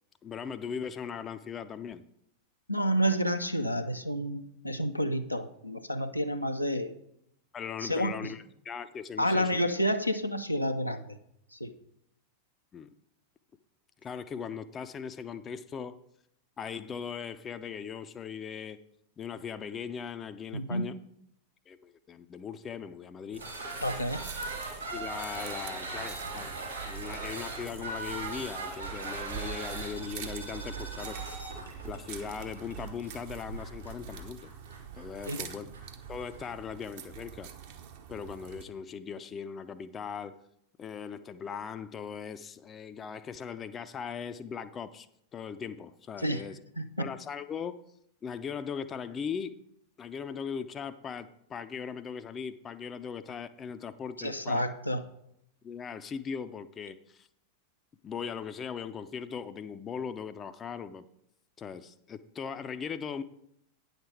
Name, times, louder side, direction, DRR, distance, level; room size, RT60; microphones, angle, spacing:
voice 1, 0.2-2.0 7.5-9.6 12.7-12.9 14.0-16.0 16.6-18.8 19.2-20.9 21.7-23.4 24.9-31.2 31.8-34.5 34.9-35.7 36.1-37.5 38.1-40.4 40.8-45.1 45.3-46.6 47.0-47.8 48.2-49.6 50.0-54.6 55.6-57.3 58.0-61.0 61.6-63.2, left 7 dB, 25° left, 11 dB, 0.5 m, -39 dB
voice 2, 2.7-6.9 7.8-8.3 9.2-11.2 11.5-11.7 20.5-20.9 23.8-24.2 35.3-35.4 46.2-46.5 46.8-47.1 54.2-55.0, equal, 90° left, 6 dB, 0.6 m, -30 dB
sound 1, 23.3-36.5, right 2 dB, 85° right, 3.1 m, -40 dB
sound 2, 23.8-38.6, right 10 dB, 50° right, 1.0 m, -44 dB
9.5 x 6.6 x 4.7 m, 0.75 s
figure-of-eight pair, 90°, 0 cm